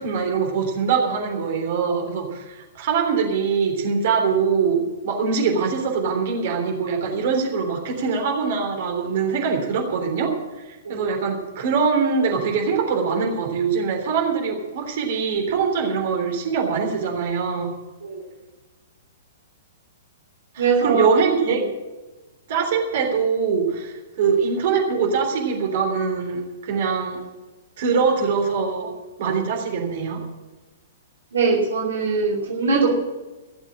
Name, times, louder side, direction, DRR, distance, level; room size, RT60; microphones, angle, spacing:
voice 1, 0.0-17.7 20.5-21.6 22.5-27.2 27.8-28.9 29.2-30.2, right 5 dB, 50° right, 2 dB, 3.4 m, -23 dB
voice 2, 20.6-21.1 21.5-21.6 31.3-32.9, right 4 dB, 65° right, -2 dB, 2.8 m, -21 dB
16.5 x 7.3 x 8.6 m, 1.2 s
figure-of-eight pair, 110°, 0 cm